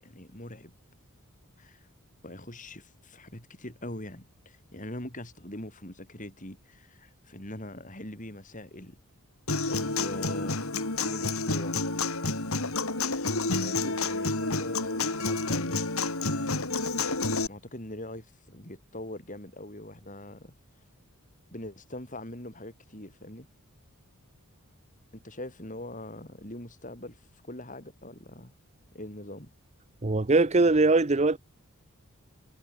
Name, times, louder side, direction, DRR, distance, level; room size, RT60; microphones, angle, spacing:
voice 1, 0.0-0.7 1.6-1.9 2.2-9.0 9.7-10.7 11.0-11.8 13.6-15.9 17.5-20.5 21.5-23.5 25.1-28.5 28.9-29.5, left 1 dB, 35° left, 7.2 m, -42 dB
Human voice / Acoustic guitar, 9.5-17.5, left 3 dB, 75° left, 5.1 m, -29 dB
voice 2, 30.0-31.4, right 3 dB, 30° right, 0.7 m, -21 dB
head